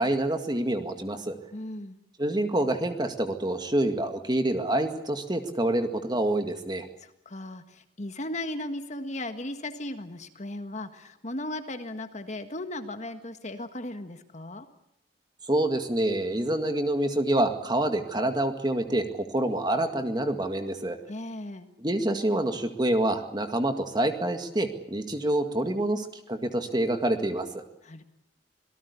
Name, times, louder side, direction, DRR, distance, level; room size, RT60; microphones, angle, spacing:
voice 1, 0.0-1.4 2.2-6.9 15.5-21.0 21.8-27.6, right 1 dB, 25° right, 6 dB, 2.0 m, -27 dB
voice 2, 1.5-2.0 7.0-14.7 21.1-21.7 27.8-28.0, left 1 dB, 40° left, 8 dB, 1.7 m, -36 dB
26.5 x 18.0 x 8.3 m, 0.76 s
head